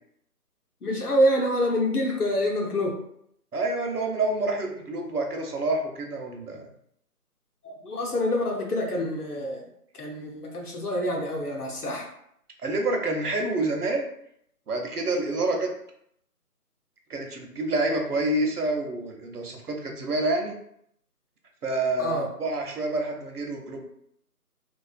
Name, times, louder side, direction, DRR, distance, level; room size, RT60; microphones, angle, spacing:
voice 1, 0.8-3.0 7.6-9.6 9.9-12.1 22.0-22.3, equal, 70° left, 0 dB, 0.8 m, -26 dB
voice 2, 3.5-6.7 12.6-14.1 14.7-15.7 17.1-20.5 21.6-23.8, right 2 dB, 70° right, 2 dB, 0.7 m, -28 dB
2.4 x 2.3 x 2.3 m, 0.71 s
figure-of-eight pair, 175°, 47 cm